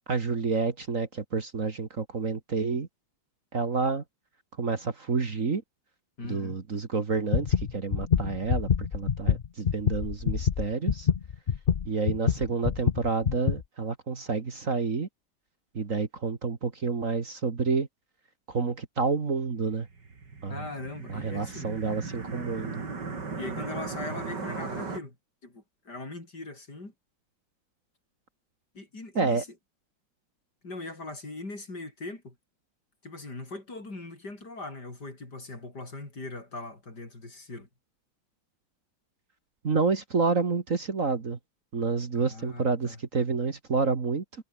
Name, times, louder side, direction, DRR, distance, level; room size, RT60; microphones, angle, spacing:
voice 1, 0.1-2.9 3.5-4.0 4.6-5.6 6.2-11.1 11.9-15.1 15.7-17.9 18.5-19.9 20.4-20.7 21.1-22.8 29.2-29.4 39.6-41.4 41.7-44.2, right 4 dB, 45° right, 2.2 m, -29 dB
voice 2, 6.2-6.6 20.5-21.7 23.4-25.2 25.4-26.9 28.7-29.5 30.6-32.3 33.0-37.7 42.1-43.0, left 2 dB, 55° left, 6.5 m, -40 dB
sound 1, 7.3-13.6, left 7 dB, 80° left, 0.4 m, -26 dB
sound 2, 19.8-25.0, right 4 dB, 60° right, 3.9 m, -37 dB
omnidirectional pair, 2.1 m